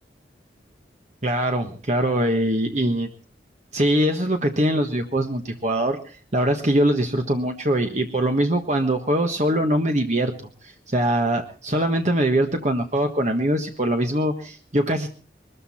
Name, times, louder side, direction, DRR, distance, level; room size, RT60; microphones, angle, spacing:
voice 1, 1.2-3.1 3.7-10.3 10.9-15.1, right 1 dB, 40° right, 4 dB, 1.5 m, -22 dB
21.5 x 13.5 x 4.4 m, 0.40 s
head